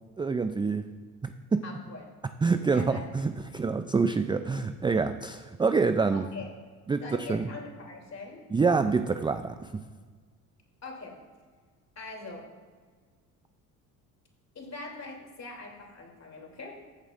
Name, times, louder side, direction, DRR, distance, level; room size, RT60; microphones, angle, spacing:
voice 1, 0.2-0.9 1.2-1.6 2.4-6.3 6.9-7.5 8.5-9.7, right 4 dB, 10° right, 10 dB, 0.4 m, -26 dB
voice 2, 1.6-2.0 2.7-3.0 6.1-6.5 7.0-8.4 10.8-11.2 11.9-12.4 14.5-16.7, left 3 dB, 35° left, 0 dB, 3.1 m, -42 dB
14.5 x 8.0 x 2.6 m, 1.5 s
hypercardioid pair, 60°, 45 cm